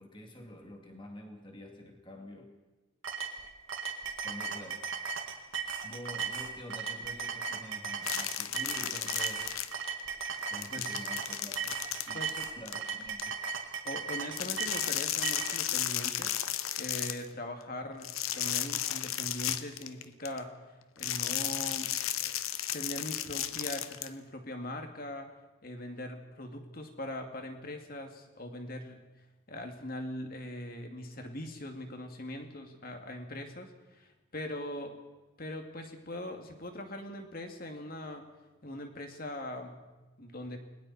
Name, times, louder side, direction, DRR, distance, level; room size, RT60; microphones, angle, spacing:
voice 1, 0.0-2.5 4.2-4.9 5.8-9.6 10.5-12.2 12.6-13.4, equal, 25° left, 2 dB, 2.5 m, -47 dB
sound 1, 3.0-15.6, right 5 dB, 70° right, 2.4 m, -36 dB
sound 2, 8.0-10.0 10.3-13.2 14.3-17.3 18.0-20.4 21.0-24.1, left 11 dB, 80° left, 0.9 m, -34 dB
voice 2, 10.7-11.1 12.1-12.5 13.8-16.3 16.8-20.6 21.0-22.4 22.7-25.3 25.6-29.0 29.5-35.0 35.4-38.3 38.6-39.8 40.2-40.6, left 1 dB, 45° left, 4 dB, 2.4 m, -41 dB
29.5 x 21.0 x 4.3 m, 1.1 s
head